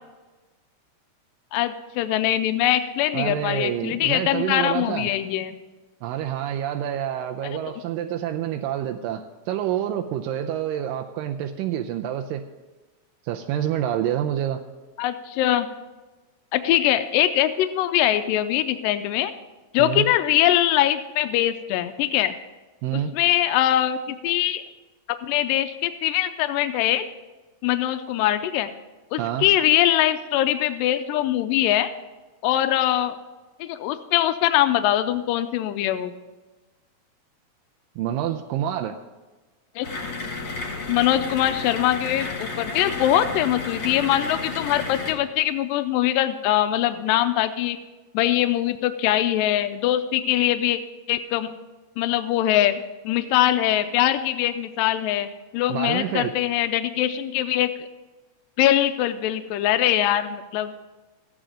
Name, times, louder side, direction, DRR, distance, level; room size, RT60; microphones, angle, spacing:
voice 1, 1.5-5.6 7.4-7.8 15.0-15.7 16.5-19.3 19.7-22.3 22.9-24.6 25.2-27.0 27.6-28.7 29.1-31.9 32.4-33.2 33.6-36.1 39.8-39.9 40.9-47.8 48.1-50.8 51.1-51.5 52.0-55.3 55.5-57.7 58.6-60.7, left 12 dB, 90° left, 10 dB, 2.2 m, -22 dB
voice 2, 3.1-5.1 6.0-12.4 13.2-14.6 19.8-20.1 22.8-23.1 29.2-29.5 38.0-39.0 55.7-56.3, right 11 dB, 85° right, 5 dB, 2.3 m, -27 dB
sound 1, 39.8-45.1, left 3 dB, 40° left, 2.0 m, -32 dB
14.0 x 9.0 x 5.0 m, 1.2 s
omnidirectional pair, 3.9 m